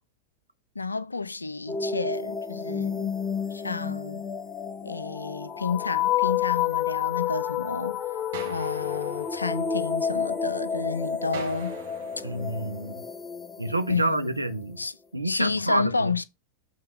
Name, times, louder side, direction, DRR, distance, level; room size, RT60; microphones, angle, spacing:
voice 1, 0.8-3.1 3.5-4.3 4.8-11.8 12.2-12.3 13.9-14.4 14.8-15.0 15.2-16.2, left 4 dB, 80° left, 0.4 m, -31 dB
sound 1, 1.7-14.4, left 8 dB, 20° left, 0.7 m, -30 dB
sound 2, 8.3-10.4 11.3-13.4, right 4 dB, 60° right, 1.6 m, -44 dB
voice 2, 12.2-13.0 13.6-14.8 15.1-16.1, right 2 dB, 85° right, 0.7 m, -28 dB
7.4 x 3.2 x 5.1 m
figure-of-eight pair, 90°, 0 cm